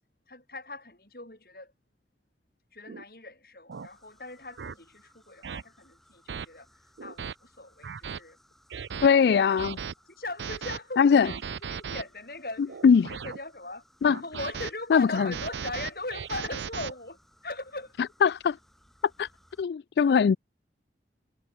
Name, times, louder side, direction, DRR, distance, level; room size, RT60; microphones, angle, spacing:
voice 1, 0.3-1.7 2.7-6.7 7.0-8.4 9.0-9.7 10.1-12.8 13.1-13.8 14.2-17.2 17.4-17.9, left 2 dB, 55° left, 5.8 m, -40 dB
sound 1, 2.9-3.0 3.7-3.9 4.6-4.7 5.4-5.6 6.3-6.5 7.0-7.3 7.8-8.2 8.7-9.1 9.6-9.9 10.4-10.8 11.2-12.0 12.7-13.4 14.0-14.7 15.1-16.9, right 6 dB, 85° right, 0.5 m, -37 dB
sound 2, 3.7-19.6, equal, ahead, 7.0 m, -63 dB
voice 2, 9.0-9.8 11.0-11.3 12.8-13.1 14.0-14.2 14.9-15.3 18.2-18.6 19.2-19.3 19.6-20.4, left 6 dB, 70° left, 0.3 m, -20 dB
head